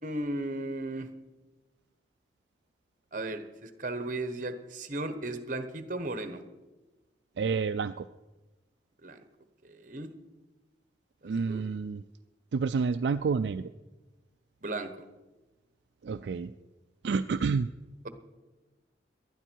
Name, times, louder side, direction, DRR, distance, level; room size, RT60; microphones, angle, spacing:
voice 1, 0.0-1.1 3.1-6.4 9.0-9.2 9.6-10.1 11.2-11.6 14.6-14.9, right 2 dB, 45° right, 10 dB, 1.1 m, -35 dB
voice 2, 7.4-8.1 11.2-12.0 12.5-13.7 16.0-16.5 17.0-17.7, right 5 dB, 70° right, 9 dB, 0.4 m, -29 dB
18.5 x 12.0 x 4.6 m, 1.2 s
head